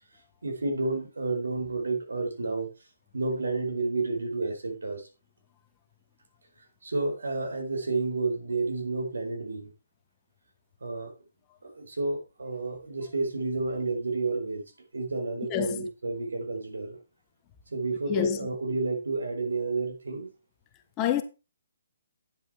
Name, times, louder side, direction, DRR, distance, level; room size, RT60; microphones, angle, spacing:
voice 1, 0.4-2.7 3.1-5.1 6.8-9.7 10.8-11.1 11.6-14.6 14.9-17.0 17.7-20.3, right 3 dB, 85° right, 4.3 m, -30 dB
voice 2, 15.5-15.9 18.1-18.4 21.0-21.2, left 11 dB, 25° left, 1.3 m, -27 dB
10.5 x 7.6 x 4.6 m
hypercardioid pair, 145°, 0 cm